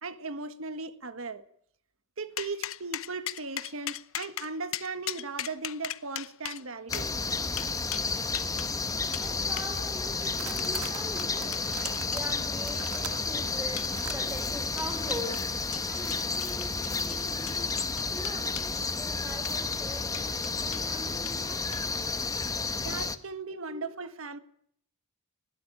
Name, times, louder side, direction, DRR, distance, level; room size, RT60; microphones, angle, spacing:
voice 1, 0.0-1.4 2.2-7.3 22.8-24.4, right 3 dB, 65° right, 1.7 m, -37 dB
sound 1, 2.4-8.7 9.1-9.3 9.6-9.7 10.2-12.3 12.7-13.2 13.8-14.2 14.8-15.5 15.7-18.7 19.4-19.8 20.1-20.9 21.3-21.4 21.7-22.1, left 12 dB, 65° left, 0.8 m, -39 dB
sound 2, 6.9-23.2, left 4 dB, 15° left, 1.2 m, -31 dB
voice 2, 9.0-11.7 12.0-17.7 18.0-22.0 23.6-24.1, equal, 10° right, 4.5 m, -43 dB
sound 3, 9.0-9.2 9.5-9.9 10.2-14.2, right 8 dB, 90° right, 1.9 m, -42 dB
20.5 x 16.0 x 8.9 m
head